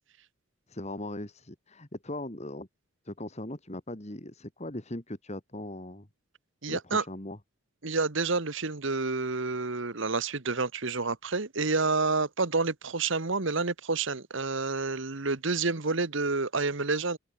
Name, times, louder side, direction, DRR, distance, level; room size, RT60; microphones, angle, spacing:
voice 1, 0.7-2.7 3.0-6.1 6.7-7.4, left 1 dB, 30° left, 2.2 m, -39 dB
voice 2, 6.6-7.0 7.8-17.2, right 3 dB, 60° right, 1.3 m, -29 dB
head